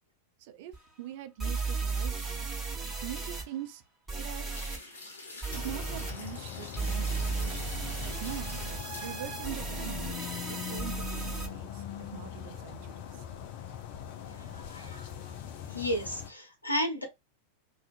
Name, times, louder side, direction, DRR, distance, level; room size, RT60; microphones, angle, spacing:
voice 1, 0.4-2.5 3.0-3.8 4.2-4.6 5.5-7.4 8.0-8.6 9.0-13.2, right 12 dB, 50° right, 0.4 m, -43 dB
sound 1, 0.7-0.8 1.4-3.4 4.1-4.8 5.4-6.1 6.8-11.5, right 4 dB, 5° right, 1.1 m, -35 dB
sound 2, 4.4-10.7 11.0-11.1, left 2 dB, 65° left, 1.1 m, -48 dB
sound 3, 5.5-16.3, left 9 dB, 50° left, 0.4 m, -41 dB
voice 2, 14.2-15.3 15.7-17.0, equal, 85° left, 0.7 m, -34 dB
2.4 x 2.4 x 2.4 m
figure-of-eight pair, 90°, 0 cm